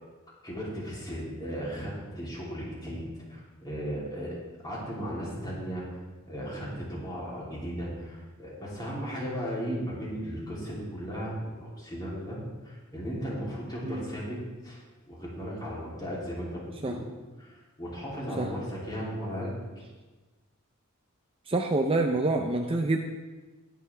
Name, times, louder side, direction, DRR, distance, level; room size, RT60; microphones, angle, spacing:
voice 1, 0.4-5.8 6.2-12.4 12.6-14.4 14.6-14.8 15.1-17.0 17.4-19.8, equal, 20° left, -6 dB, 3.1 m, -36 dB
voice 2, 21.5-23.0, right 2 dB, 25° right, 4 dB, 0.6 m, -26 dB
19.5 x 7.1 x 3.4 m, 1.3 s
head